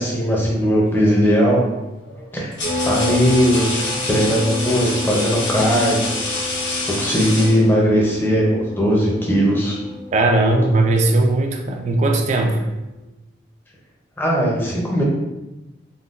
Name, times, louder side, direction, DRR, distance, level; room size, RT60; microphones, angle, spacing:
voice 1, 0.0-1.6 2.3-2.5 2.8-6.1 7.0-9.8 14.2-15.0, equal, 10° left, -4 dB, 0.6 m, -18 dB
sound 1, 0.9-1.3 2.1-8.0, left 2 dB, 75° left, 0.8 m, -27 dB
sound 2, 2.6-13.0, left 2 dB, 45° left, 0.8 m, -31 dB
voice 2, 10.1-12.6, right 2 dB, 40° right, 3 dB, 0.3 m, -18 dB
3.6 x 2.2 x 2.5 m, 0.99 s
head